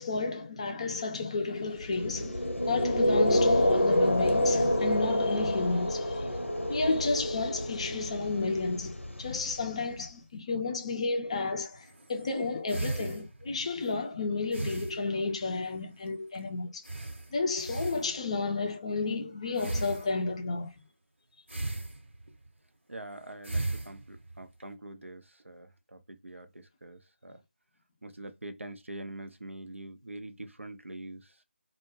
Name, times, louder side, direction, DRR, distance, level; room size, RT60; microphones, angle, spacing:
voice 1, 0.0-16.9 17.3-20.7, left 3 dB, 30° left, 0.4 m, -32 dB
sound 1, 1.8-9.9, left 1 dB, 90° left, 0.6 m, -28 dB
sound 2, 11.7-14.0 14.5-15.7 16.0-16.1 16.3-16.4 16.8-18.5 19.6-20.5 21.5-22.5 23.1-24.6, right 2 dB, 75° right, 0.9 m, -37 dB
voice 2, 22.9-27.4 28.0-31.4, right 1 dB, 90° right, 0.5 m, -44 dB
2.1 x 2.1 x 3.0 m
figure-of-eight pair, 155°, 7 cm